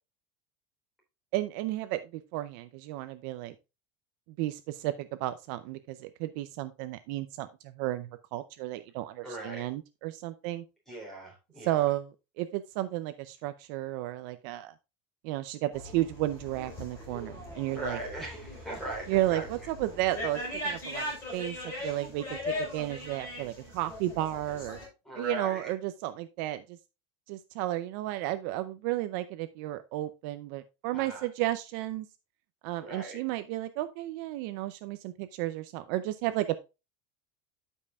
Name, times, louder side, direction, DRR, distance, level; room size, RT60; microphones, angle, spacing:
voice 1, 1.3-3.5 4.4-10.6 11.6-14.7 15.2-18.0 19.1-21.6 21.8-24.8 25.1-26.8 27.3-32.1 32.6-36.6, right 15 dB, 50° right, 11 dB, 0.5 m, -33 dB
voice 2, 9.2-9.6 10.9-11.9 17.7-19.5 21.7-22.1 25.0-25.7 30.9-31.3 32.8-33.2, right 1 dB, ahead, -2 dB, 3.5 m, -39 dB
sound 1, 15.7-24.9, left 1 dB, 20° left, 4.6 m, -39 dB
12.5 x 5.4 x 2.4 m, 0.27 s
cardioid pair, 175°, 13 cm